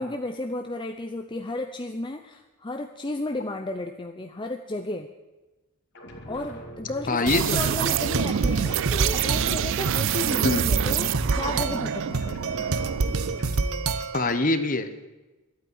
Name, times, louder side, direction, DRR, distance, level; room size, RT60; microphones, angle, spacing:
voice 1, 0.0-5.1 6.3-12.6, left 2 dB, 20° left, 5 dB, 0.6 m, -33 dB
sound 1, 5.9-9.9 10.1-12.0 12.2-13.9, left 1 dB, 55° left, 2.3 m, -42 dB
voice 2, 7.1-7.8 10.4-10.6 14.1-15.1, left 2 dB, 35° left, 10 dB, 1.1 m, -24 dB
sound 2, 7.3-13.4, right 9 dB, 55° right, 0.3 m, -27 dB
sound 3, 7.6-14.4, right 3 dB, 80° right, 0.8 m, -28 dB
12.0 x 9.0 x 9.5 m, 1.1 s
head